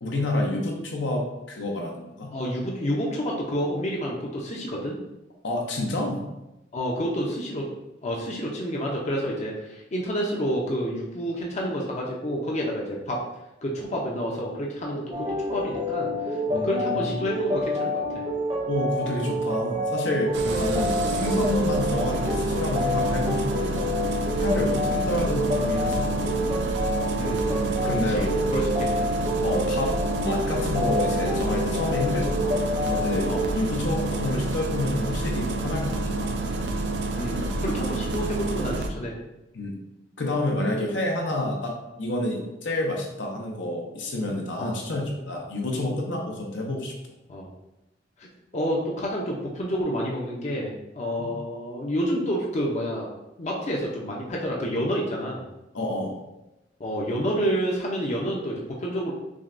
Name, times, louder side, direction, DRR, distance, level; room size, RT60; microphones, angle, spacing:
voice 1, 0.0-2.3 5.4-6.2 16.5-17.2 18.7-23.9 24.4-26.6 27.4-28.2 29.4-33.3 33.5-36.3 39.5-39.7 40.2-41.7 42.0-46.9 51.2-51.3 55.7-56.2, left 1 dB, 75° left, 0 dB, 0.7 m, -29 dB
voice 2, 2.3-5.0 6.7-7.7 8.0-13.2 13.6-18.2 20.4-20.7 21.0-21.2 24.5-24.7 27.2-29.1 33.2-33.5 34.1-34.2 37.1-39.1 44.6-44.7 47.3-47.5 48.2-48.3 48.5-53.1 53.4-55.4 56.8-59.1, equal, 40° left, -2 dB, 0.6 m, -29 dB
sound 1, 15.1-33.5, left 1 dB, 30° right, 0.7 m, -28 dB
Engine starting, 20.3-38.9, right 2 dB, 65° right, 0.4 m, -29 dB
6.1 x 2.2 x 2.5 m, 0.95 s
head